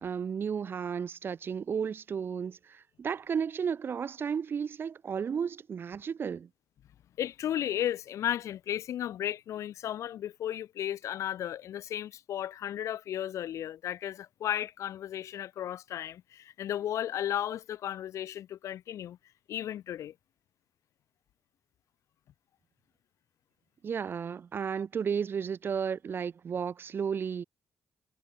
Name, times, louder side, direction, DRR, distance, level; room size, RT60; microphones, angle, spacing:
voice 1, 0.0-6.5 23.8-27.4, right 7 dB, 45° right, 0.6 m, -33 dB
voice 2, 7.2-19.2 19.5-20.1, left 11 dB, 70° left, 0.4 m, -34 dB
cardioid pair, 120°, 5 cm